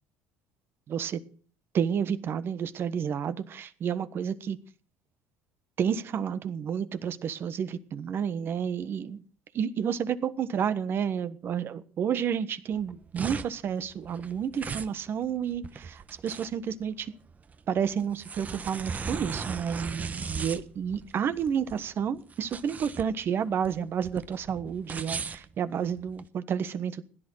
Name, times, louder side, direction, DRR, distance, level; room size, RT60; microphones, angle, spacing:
voice 1, 0.9-1.2 1.7-4.6 5.8-9.2 9.5-17.1 17.7-27.0, right 8 dB, 50° right, 1.3 m, -30 dB
sound 1, 12.7-26.3, right 5 dB, 30° right, 1.0 m, -38 dB
16.0 x 11.0 x 6.4 m
supercardioid pair, 80°, 5 cm